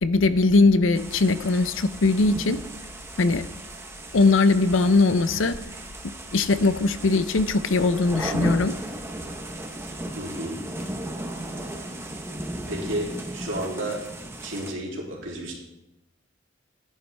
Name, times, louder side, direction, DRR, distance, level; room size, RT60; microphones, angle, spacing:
voice 1, 0.0-2.6 3.2-3.5 4.1-5.6 6.3-8.7, left 3 dB, 85° left, 12 dB, 0.6 m, -20 dB
sound 1, 0.9-14.7, right 1 dB, 15° right, 1.0 m, -36 dB
voice 2, 10.1-10.6 12.7-14.1 14.4-15.5, right 1 dB, 85° right, -3 dB, 3.1 m, -32 dB
13.5 x 10.5 x 3.5 m, 0.94 s
head